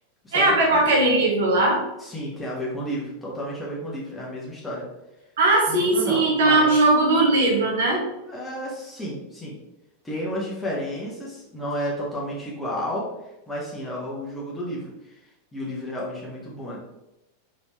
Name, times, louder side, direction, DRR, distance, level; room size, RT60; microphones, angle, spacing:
voice 1, 0.3-1.8 5.4-8.0, right 2 dB, 60° right, -1 dB, 1.1 m, -19 dB
voice 2, 2.0-4.9 5.7-6.7 8.3-9.6 10.0-13.1 13.5-15.2 15.5-16.8, equal, 10° left, -5 dB, 1.5 m, -31 dB
3.9 x 3.6 x 3.1 m, 0.91 s
figure-of-eight pair, 90°, 0 cm